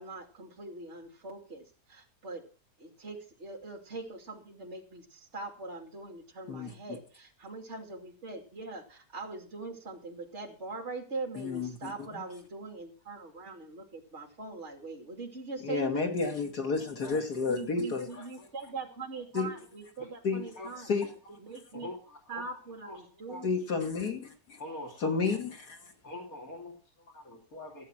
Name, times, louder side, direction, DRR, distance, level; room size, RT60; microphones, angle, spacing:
voice 1, 0.0-2.5 2.8-16.2 17.5-20.9 21.4-21.9 22.3-23.6, right 3 dB, 45° right, 1 dB, 2.9 m, -42 dB
voice 2, 11.4-12.2 15.6-18.1 19.3-19.5 20.2-20.4 20.9-21.1 23.4-24.6 25.0-25.8, left 4 dB, 75° left, 3 dB, 3.0 m, -31 dB
voice 3, 16.9-17.3 18.1-18.5 20.0-20.1 20.6-20.7 21.2-21.4 21.7-22.4 22.8-23.4 24.6-25.4 26.0-27.8, left 1 dB, 60° left, -1 dB, 3.3 m, -45 dB
15.0 x 8.2 x 6.1 m, 0.38 s
omnidirectional pair, 1.7 m